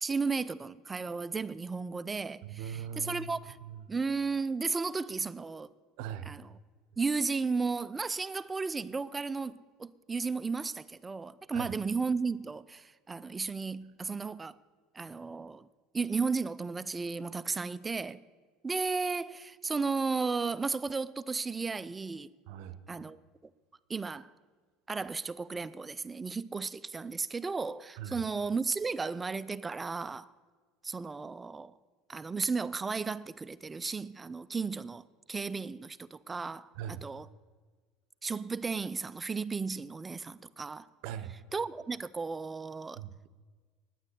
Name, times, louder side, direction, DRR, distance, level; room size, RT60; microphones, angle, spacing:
voice 1, 0.0-3.6 3.9-5.7 6.3-6.4 7.0-14.6 14.9-15.7 15.9-18.2 18.6-22.3 22.9-23.2 23.9-24.3 24.9-30.3 30.8-31.7 32.1-36.7 37.0-37.3 38.2-40.9 41.5-43.0, right 4 dB, 20° right, 0.4 m, -34 dB
voice 2, 2.4-3.3 3.6-3.9 6.0-6.3 11.5-11.8 22.5-22.8 28.0-28.2 36.8-37.1 41.0-41.3 42.9-43.3, right 8 dB, 70° right, 0.7 m, -40 dB
9.7 x 9.3 x 8.2 m
supercardioid pair, 105°, 0 cm